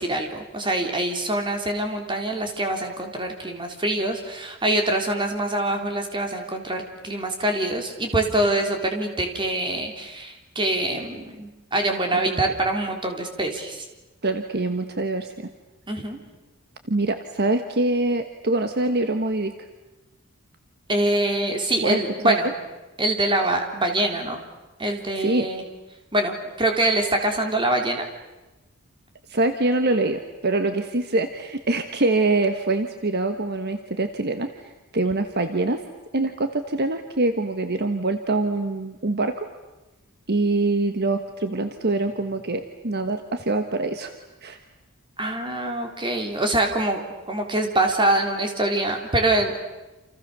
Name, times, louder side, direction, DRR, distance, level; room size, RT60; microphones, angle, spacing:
voice 1, 0.0-13.8 15.9-16.2 20.9-22.5 23.0-24.4 24.8-25.6 26.1-28.1 45.2-47.0 47.3-49.6, right 1 dB, 25° right, 3 dB, 3.8 m, -24 dB
voice 2, 12.1-12.4 14.2-15.3 16.9-19.7 21.8-22.0 22.2-22.5 25.2-25.5 29.3-34.7 34.9-35.8 36.1-39.5 40.3-44.1 44.4-44.6, right 2 dB, 50° right, 7 dB, 1.5 m, -24 dB
29.0 x 28.0 x 6.9 m, 1.1 s
head